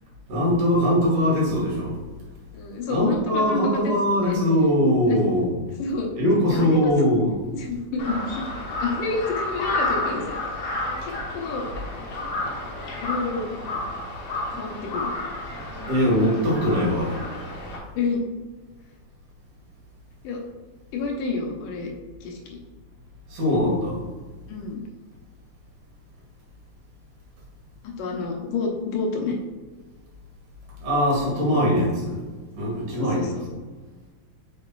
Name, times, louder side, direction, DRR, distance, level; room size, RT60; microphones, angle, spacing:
voice 1, 0.3-2.0 2.9-5.5 6.2-7.3 15.9-17.2 23.3-24.0 30.8-32.3 32.6-33.3, equal, 75° right, -4 dB, 3.5 m, -21 dB
voice 2, 2.5-4.4 5.1-5.3 5.8-6.1 6.5-6.9 7.5-10.5 11.0-11.7 13.0-13.5 14.5-15.1 18.0-18.2 20.2-20.4 20.9-21.9 22.2-22.6 24.5-24.8 27.8-29.4 31.5-31.6 33.0-33.4, left 3 dB, 85° left, 1 dB, 2.7 m, -29 dB
Crow, 8.0-17.8, left 2 dB, 50° left, 1.4 m, -31 dB
7.6 x 5.7 x 2.4 m, 1.4 s
omnidirectional pair, 3.6 m